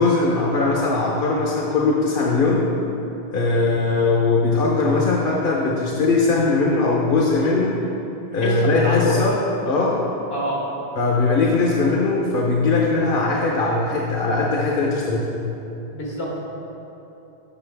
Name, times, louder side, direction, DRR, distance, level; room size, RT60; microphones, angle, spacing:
voice 1, 0.0-2.6 3.3-7.7 8.3-9.4 9.6-10.0 11.0-15.3, left 3 dB, 65° left, -3 dB, 0.9 m, -20 dB
voice 2, 8.4-9.2 10.3-10.6 15.9-16.4, equal, 85° left, -4 dB, 1.7 m, -26 dB
7.6 x 6.4 x 3.4 m, 3.0 s
omnidirectional pair, 1.0 m